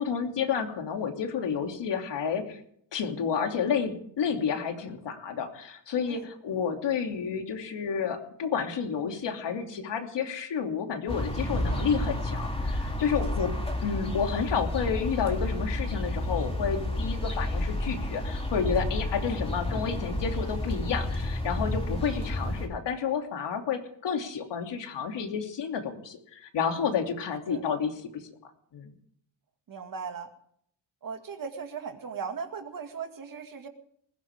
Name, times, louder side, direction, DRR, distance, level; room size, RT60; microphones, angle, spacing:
voice 1, 0.0-2.6 2.9-13.5 13.8-28.2 28.7-28.9, left 6 dB, 65° left, 4 dB, 2.9 m, -30 dB
sound 1, 11.1-22.7, left 1 dB, 10° left, 3.3 m, -31 dB
voice 2, 13.1-13.5 19.2-19.4 27.5-27.6 29.7-30.3 31.0-33.7, right 6 dB, 45° right, 6 dB, 2.3 m, -38 dB
20.5 x 16.0 x 3.7 m, 0.66 s
cardioid pair, 120°, 45 cm